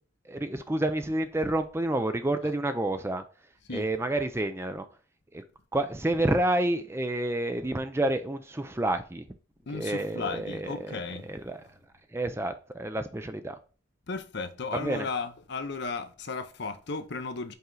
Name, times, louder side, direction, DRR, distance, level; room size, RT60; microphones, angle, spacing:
voice 1, 0.2-3.2 3.7-4.9 5.3-5.4 5.7-9.3 9.7-11.8 12.1-13.6 14.7-15.1, right 1 dB, 10° right, 0.4 m, -29 dB
voice 2, 9.7-11.3 14.1-17.5, left 4 dB, 50° left, 0.7 m, -35 dB
5.5 x 4.5 x 3.8 m
head